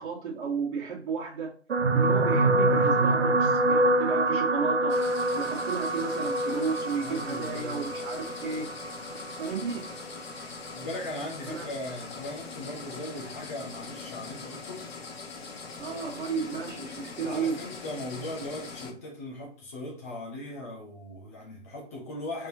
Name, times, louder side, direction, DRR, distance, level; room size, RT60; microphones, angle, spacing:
voice 1, 0.0-1.5 1.9-5.0 5.3-8.7 9.4-9.9 11.5-11.7 15.8-17.6, right 5 dB, 45° right, 1.5 m, -33 dB
sound 1, 1.7-10.1 10.9-11.1 11.4-11.5, right 2 dB, 70° right, 0.8 m, -26 dB
sound 2, 4.9-18.9, left 4 dB, 60° left, 1.0 m, -42 dB
voice 2, 7.0-7.9 10.8-14.9 17.2-22.5, left 1 dB, 15° left, 0.5 m, -38 dB
4.2 x 3.6 x 2.6 m
figure-of-eight pair, 140°, 35 cm